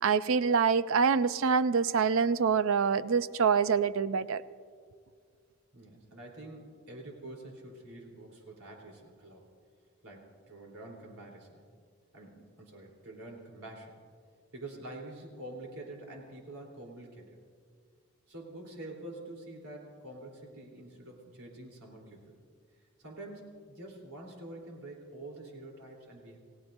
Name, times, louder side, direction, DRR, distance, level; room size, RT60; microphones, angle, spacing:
voice 1, 0.0-4.4, right 6 dB, 65° right, 15 dB, 0.5 m, -26 dB
voice 2, 5.7-9.4 10.0-11.6 12.1-14.0 14.5-17.4 18.3-22.4 23.0-26.4, right 2 dB, 85° right, 0 dB, 3.6 m, -47 dB
29.5 x 16.5 x 2.7 m, 2.1 s
head